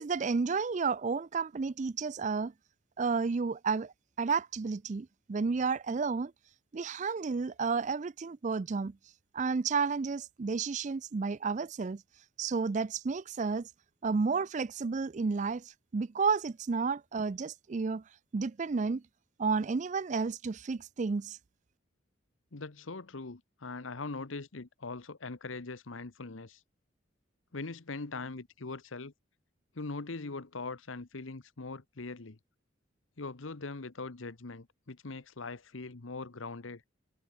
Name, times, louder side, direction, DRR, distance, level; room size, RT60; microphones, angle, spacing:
voice 1, 0.0-2.5 3.0-6.3 6.7-9.0 9.3-12.0 12.4-13.7 14.0-18.0 18.3-19.0 19.4-21.4, right 4 dB, 40° right, 0.4 m, -31 dB
voice 2, 22.5-26.6 27.5-29.1 29.7-32.4 33.2-36.8, left 3 dB, 85° left, 1.1 m, -41 dB
head